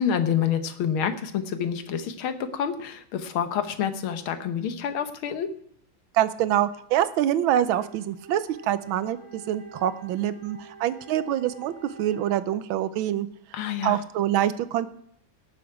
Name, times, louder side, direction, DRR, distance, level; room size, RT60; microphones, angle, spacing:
voice 1, 0.0-5.5 13.5-14.0, left 8 dB, 85° left, 9 dB, 1.8 m, -28 dB
voice 2, 6.1-13.3 13.8-14.9, right 11 dB, 75° right, 14 dB, 1.4 m, -25 dB
Wind instrument woodwind instrument, 7.4-12.7, right 3 dB, 20° right, 2.6 m, -47 dB
18.0 x 7.2 x 4.8 m, 0.66 s
omnidirectional pair, 2.3 m